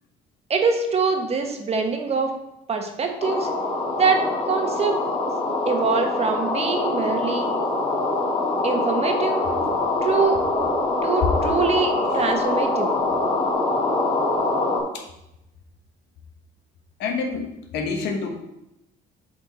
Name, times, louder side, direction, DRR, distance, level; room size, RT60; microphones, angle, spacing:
voice 1, 0.5-2.3 2.7-3.5 3.9-5.0 5.7-7.5 8.6-9.4 10.0-10.4 11.0-13.0, right 4 dB, 40° right, 4 dB, 1.2 m, -24 dB
sound 1, 3.2-14.8, left 2 dB, 40° left, 1.9 m, -24 dB
voice 2, 17.0-18.3, left 4 dB, 80° left, 4 dB, 1.3 m, -27 dB
7.8 x 4.3 x 4.3 m, 0.88 s
cardioid pair, 110°, 17 cm